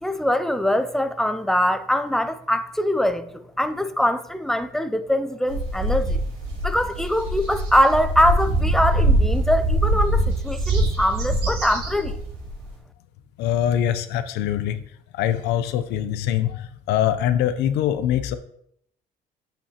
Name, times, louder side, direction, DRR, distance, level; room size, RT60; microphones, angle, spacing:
voice 1, 0.0-3.2 3.6-6.2 6.6-12.2, equal, ahead, 0.4 m, -22 dB
sound 1, 5.5-12.6, right 1 dB, 70° right, 2.9 m, -23 dB
voice 2, 13.4-14.8 15.1-18.4, left 10 dB, 85° left, 0.5 m, -23 dB
8.4 x 5.1 x 2.8 m
cardioid pair, 110°, 17 cm